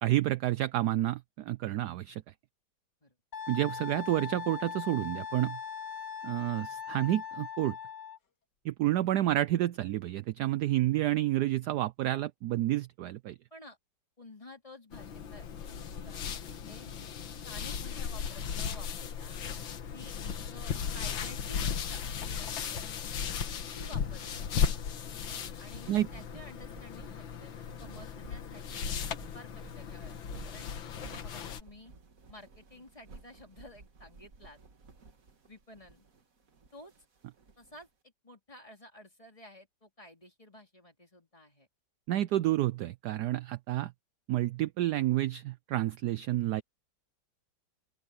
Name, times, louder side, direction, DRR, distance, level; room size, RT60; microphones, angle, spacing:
voice 1, 0.0-2.2 3.5-5.6 6.2-7.8 8.6-13.4 25.9-26.1 42.1-43.9 44.3-46.6, right 15 dB, 70° right, 1.0 m, -29 dB
Wind instrument woodwind instrument, 3.3-8.2, left 7 dB, 60° left, 2.8 m, -40 dB
voice 2, 14.2-16.2 16.6-16.9 17.4-19.4 19.9-22.9 23.7-24.5 25.6-28.9 29.3-30.2 30.4-31.9 32.3-34.6 35.5-36.0 36.7-36.9 37.6-41.7, left 1 dB, 15° left, 3.3 m, -52 dB
sound 1, 14.9-31.6, left 7 dB, 85° left, 2.1 m, -36 dB
sound 2, 23.7-37.9, right 4 dB, 45° right, 2.2 m, -54 dB
open air
omnidirectional pair, 2.1 m